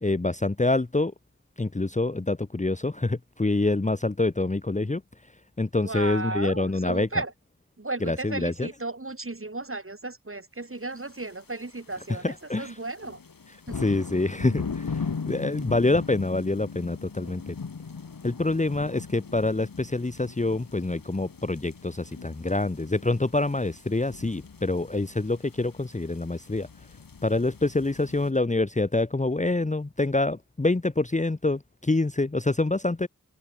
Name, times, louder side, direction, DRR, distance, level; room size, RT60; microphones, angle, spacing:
voice 1, 0.0-1.1 1.6-5.0 5.6-7.1 8.0-8.7 12.2-12.7 13.8-17.5 18.2-26.7 27.2-33.1, left 2 dB, 20° left, 1.0 m, -26 dB
voice 2, 5.8-7.3 7.8-13.2 13.7-13.9, right 2 dB, 40° right, 3.9 m, -34 dB
sound 1, 11.2-11.5 11.9-12.2 12.6-28.3, left 5 dB, 85° left, 3.2 m, -39 dB
open air
cardioid pair, 45°, 33 cm